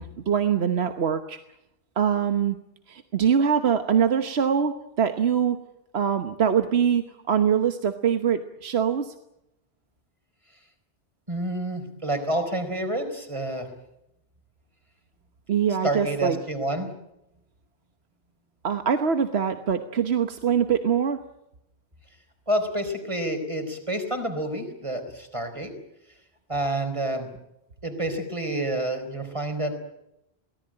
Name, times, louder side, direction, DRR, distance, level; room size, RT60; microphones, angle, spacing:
voice 1, 0.0-1.4 2.0-2.6 2.9-5.6 5.9-9.1 15.5-16.4 18.6-21.2, right 7 dB, 85° right, 8 dB, 1.4 m, -23 dB
voice 2, 11.3-13.7 15.8-16.9 22.5-25.7 26.5-27.3 27.8-29.7, right 1 dB, 30° right, 6 dB, 4.4 m, -28 dB
23.5 x 18.5 x 8.8 m, 0.84 s
omnidirectional pair, 1.1 m